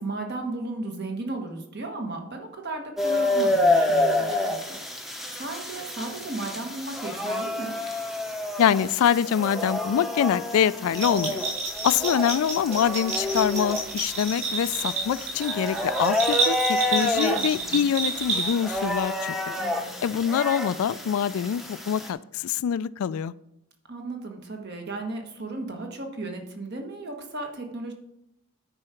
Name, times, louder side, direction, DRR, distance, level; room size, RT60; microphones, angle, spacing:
voice 1, 0.0-7.8 17.1-17.9 19.5-19.9 23.9-27.9, right 2 dB, 45° right, 3 dB, 1.3 m, -35 dB
sound 1, 3.0-22.1, left 1 dB, ahead, 0.7 m, -29 dB
voice 2, 8.6-11.4 11.8-19.4 20.0-23.3, left 8 dB, 75° left, 19 dB, 0.3 m, -25 dB
Bell, 10.9-18.8, right 3 dB, 30° right, 2.9 m, -29 dB
9.7 x 4.8 x 5.7 m, 0.81 s
head